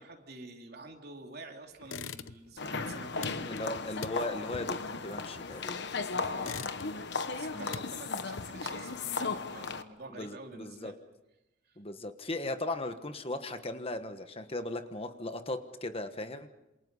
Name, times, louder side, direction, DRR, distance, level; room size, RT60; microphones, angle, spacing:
voice 1, 0.0-3.5 6.1-6.7 7.2-10.9 11.6-11.8, right 3 dB, 55° right, 2 dB, 3.3 m, -48 dB
sound 1, 1.8-2.6 2.9-5.8 6.2-7.2 7.5-8.8, left 6 dB, 85° left, 0.8 m, -44 dB
sound 2, 2.6-9.8, left 4 dB, 60° left, 1.2 m, -36 dB
voice 2, 3.4-5.9 7.5-7.8 10.1-11.0 11.8-16.5, left 2 dB, 30° left, 8 dB, 1.3 m, -37 dB
28.0 x 27.5 x 5.5 m, 0.93 s
head